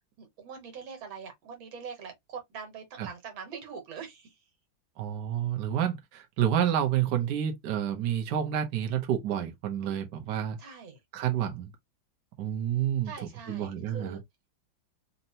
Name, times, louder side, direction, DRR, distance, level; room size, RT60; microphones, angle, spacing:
voice 1, 0.2-4.4 10.6-11.0 13.1-14.2, right 6 dB, 90° right, 2.1 m, -43 dB
voice 2, 5.0-10.6 11.1-11.7 12.4-13.1 13.5-14.2, right 10 dB, 65° right, 1.3 m, -29 dB
4.3 x 2.8 x 2.8 m
omnidirectional pair, 2.1 m